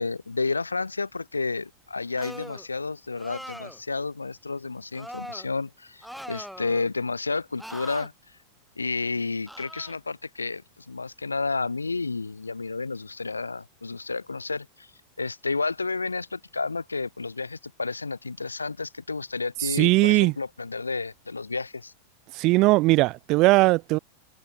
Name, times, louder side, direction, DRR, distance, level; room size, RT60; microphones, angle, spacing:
voice 1, 0.0-8.1 8.8-14.9 15.2-21.9, left 4 dB, 80° left, 1.0 m, -31 dB
sound 1, 2.2-2.7 3.2-3.8 4.9-5.5 6.0-6.9 7.6-8.1 9.5-9.9, equal, ahead, 1.1 m, -41 dB
voice 2, 19.8-20.3 22.3-24.0, right 21 dB, 40° right, 0.8 m, -19 dB
figure-of-eight pair, 90°, 0 cm